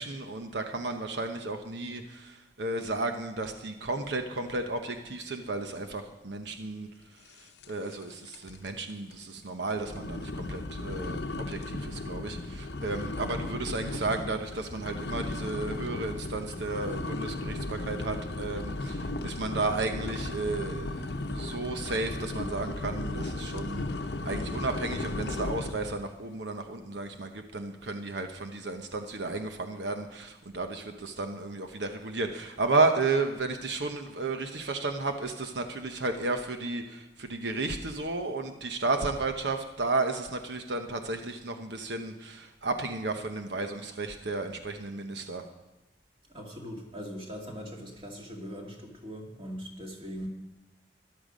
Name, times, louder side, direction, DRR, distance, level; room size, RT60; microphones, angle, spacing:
voice 1, 0.0-6.9 7.3-23.9 24.2-45.5, right 3 dB, 85° right, 6 dB, 1.0 m, -33 dB
sound 1, 7.6-8.0 8.3-8.7 9.1-9.2 9.8-25.9, left 2 dB, 75° left, 0.7 m, -35 dB
voice 2, 46.3-50.3, equal, 30° right, 0 dB, 2.2 m, -41 dB
13.5 x 11.0 x 5.1 m, 1.1 s
head